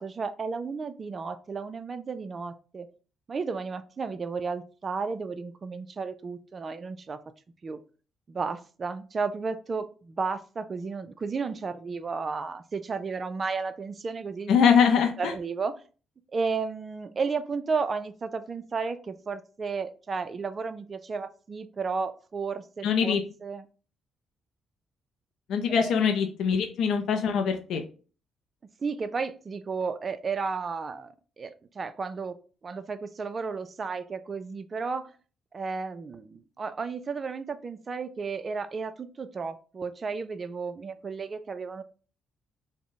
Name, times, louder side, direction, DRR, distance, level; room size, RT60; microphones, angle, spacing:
voice 1, 0.0-2.9 3.3-7.2 7.6-7.8 8.3-14.5 15.2-15.7 16.3-23.7 25.7-25.9 27.7-27.8 28.8-32.4 32.6-35.1 35.5-41.8, right 4 dB, 40° right, 10 dB, 0.4 m, -33 dB
voice 2, 14.5-15.3 22.8-23.2 25.5-27.8, left 7 dB, 75° left, 5 dB, 0.4 m, -23 dB
3.6 x 2.1 x 3.7 m, 0.37 s
cardioid pair, 90°, 0 cm